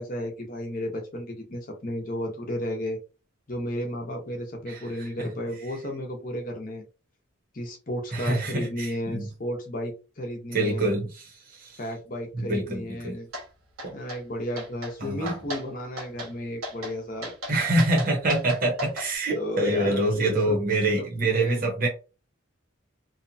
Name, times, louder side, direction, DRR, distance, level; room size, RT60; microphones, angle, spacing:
voice 1, 0.0-3.0 3.5-6.8 7.5-11.0 11.8-13.3 13.9-17.3 19.3-20.6 20.9-21.6, equal, 40° left, 1 dB, 0.7 m, -33 dB
voice 2, 8.1-9.3 10.5-11.2 11.5-11.8 12.4-13.2 15.0-15.4 17.5-21.9, right 2 dB, 40° right, -1 dB, 0.8 m, -25 dB
sound 1, 13.3-13.5 13.8-14.2 14.6-14.9 15.3-15.6 16.0-16.3 16.6-16.9 17.2-19.1, left 1 dB, 85° right, 1.2 m, -35 dB
2.7 x 2.2 x 2.6 m, 0.32 s
head